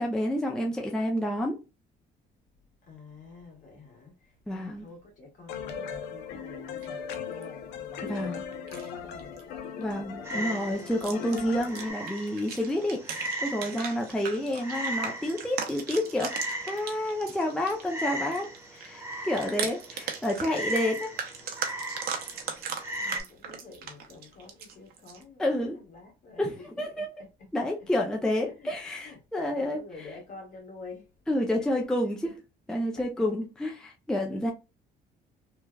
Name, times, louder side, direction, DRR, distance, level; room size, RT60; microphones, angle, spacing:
voice 1, 0.0-1.6 4.5-4.8 8.0-8.4 9.8-21.1 25.4-25.8 26.4-27.1 27.5-29.8 31.3-32.4 32.7-34.5, left 1 dB, 5° left, 0.4 m, -29 dB
voice 2, 2.8-9.4 22.2-22.4 22.9-27.5 28.5-28.7 29.0-31.1 31.5-31.8 33.0-33.1 34.4-34.5, left 3 dB, 50° left, 1.5 m, -49 dB
sound 1, 5.5-11.9, left 7 dB, 85° left, 0.6 m, -38 dB
sound 2, 6.8-7.5 8.5-8.9 9.2-9.4 9.8-10.0 10.9-17.8 18.1-25.2, right 7 dB, 65° right, 0.7 m, -38 dB
Frog, 10.2-23.2, right 1 dB, 15° right, 1.0 m, -38 dB
3.1 x 2.3 x 2.2 m
cardioid pair, 110°, 17 cm